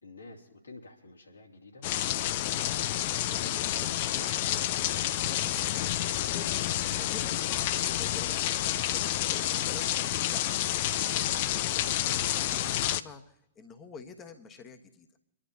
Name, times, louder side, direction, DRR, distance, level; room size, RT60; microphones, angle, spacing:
voice 1, 0.0-1.8 11.1-11.4, left 3 dB, 75° left, -1 dB, 2.6 m, -50 dB
sound 1, 1.8-13.0, left 13 dB, 45° left, 0.5 m, -29 dB
voice 2, 2.5-2.9 3.1-4.7 5.1-5.9 6.3-10.4 11.5-15.1, left 5 dB, 20° left, 6 dB, 1.3 m, -48 dB
27.5 x 11.5 x 2.8 m, 0.80 s
figure-of-eight pair, 105°, 0 cm